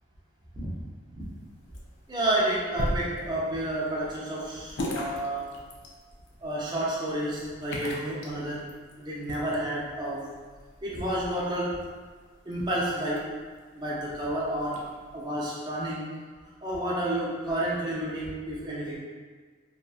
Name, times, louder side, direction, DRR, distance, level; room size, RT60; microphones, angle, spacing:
sound 1, 1.2-15.2, left 1 dB, 55° left, 0.4 m, -40 dB
voice 1, 2.1-5.5 6.4-8.7 9.0-10.3 10.8-11.8 12.5-13.3 13.7-14.8 15.1-16.1 16.6-19.0, right 1 dB, 20° right, -6 dB, 0.4 m, -30 dB
2.7 x 2.3 x 2.4 m, 1.5 s
head